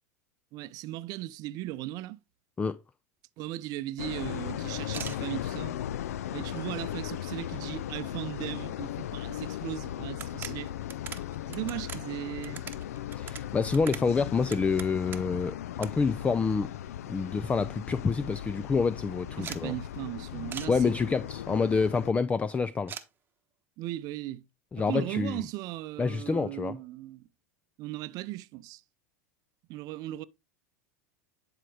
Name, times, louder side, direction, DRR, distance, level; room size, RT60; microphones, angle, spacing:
voice 1, 0.5-2.2 3.4-5.7 6.3-10.7 11.5-12.6 19.4-20.9 23.8-24.5 24.8-27.3 27.8-28.8 29.7-30.2, right 16 dB, 50° right, 0.6 m, -37 dB
sound 1, 4.0-22.1, left 11 dB, 80° left, 0.4 m, -37 dB
sound 2, 4.9-5.2 5.9-6.0 6.5-7.2 7.5-7.6 7.9-8.0 9.3-9.4 9.7-9.8 10.1-15.4 15.8-15.9 16.2-17.0 17.3-17.4 17.7-17.8 18.0-18.4 19.4-19.6 20.5-20.7 22.9-23.1, right 7 dB, 25° right, 1.0 m, -43 dB
voice 2, 13.1-16.7 17.1-19.7 20.7-22.9 24.7-25.4 26.0-26.8, left 5 dB, 15° left, 0.4 m, -27 dB
10.5 x 4.8 x 3.3 m
hypercardioid pair, 95°, 8 cm